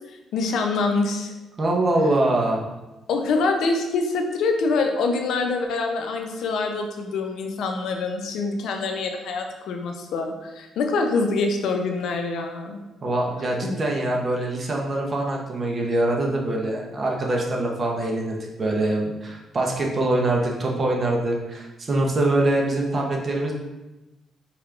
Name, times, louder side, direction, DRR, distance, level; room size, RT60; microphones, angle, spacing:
voice 1, 0.3-1.3 3.1-12.8 13.6-13.8, left 3 dB, 75° left, 4 dB, 0.5 m, -25 dB
voice 2, 1.6-2.7 13.0-23.5, right 2 dB, 40° right, 0 dB, 0.8 m, -24 dB
4.5 x 3.3 x 2.4 m, 1.1 s
cardioid pair, 90°, 0 cm